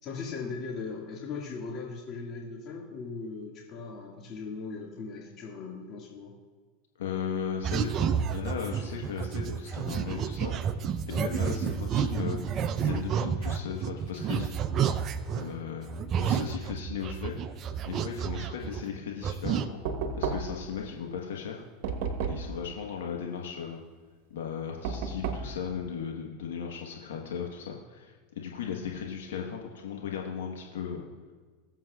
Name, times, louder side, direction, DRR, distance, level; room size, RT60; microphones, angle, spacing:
voice 1, 0.0-6.3 11.4-11.7, left 4 dB, 45° left, -3 dB, 1.9 m, -39 dB
voice 2, 7.0-10.5 11.1-14.6 15.3-17.4 17.9-19.8 20.1-21.6 22.3-23.8 24.3-31.0, left 7 dB, 80° left, 0 dB, 1.2 m, -36 dB
sound 1, 7.6-15.5 15.9-19.0 19.2-19.6, right 7 dB, 40° right, 0.6 m, -30 dB
Knock, 19.8-20.7 21.8-22.6 24.8-25.6, right 5 dB, 65° right, 1.2 m, -32 dB
21.0 x 7.4 x 2.4 m, 1.4 s
hypercardioid pair, 100°, 0 cm